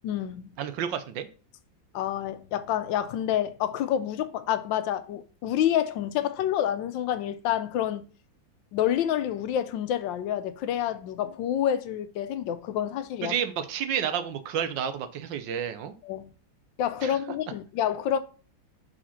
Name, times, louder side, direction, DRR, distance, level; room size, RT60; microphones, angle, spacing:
voice 1, 0.0-0.4 1.9-8.1 8.7-13.3 16.0-16.3 16.8-18.2, left 10 dB, 80° left, 1.3 m, -28 dB
voice 2, 0.6-1.3 13.2-15.9 17.0-17.2, right 8 dB, 75° right, 1.4 m, -30 dB
5.0 x 4.2 x 5.6 m
omnidirectional pair, 2.1 m